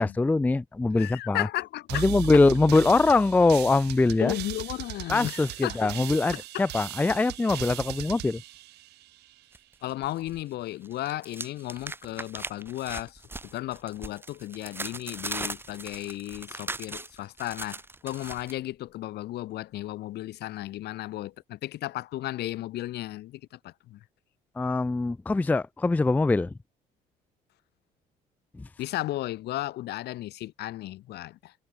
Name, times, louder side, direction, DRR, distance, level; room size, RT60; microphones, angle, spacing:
voice 1, 0.0-1.5 1.9-4.3 5.1-8.4 24.6-26.5 28.6-28.7, left 3 dB, 10° left, 0.4 m, -23 dB
voice 2, 0.9-2.4 4.2-5.9 6.3-6.7 9.8-24.0 28.8-31.5, left 15 dB, 75° left, 3.1 m, -34 dB
sound 1, 1.9-9.4, right 17 dB, 80° right, 3.2 m, -38 dB
sound 2, 9.5-10.4 10.7-18.5, right 2 dB, 15° right, 4.7 m, -39 dB
cardioid pair, 110°, 17 cm